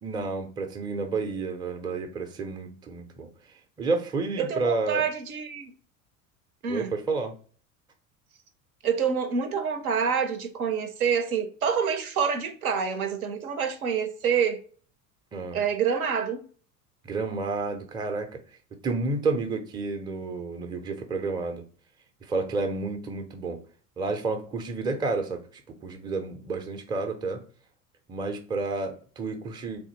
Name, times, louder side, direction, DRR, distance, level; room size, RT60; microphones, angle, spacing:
voice 1, 0.0-3.3 3.8-5.0 6.7-7.4 15.3-15.6 17.0-18.4 18.8-21.6 22.2-23.6 24.0-25.5 25.8-27.5 28.1-29.8, right 3 dB, 10° right, 0.4 m, -30 dB
voice 2, 4.4-5.7 6.6-7.0 8.8-14.6 15.5-16.4, right 7 dB, 75° right, 0.6 m, -27 dB
3.5 x 2.6 x 2.7 m
figure-of-eight pair, 70°, 43 cm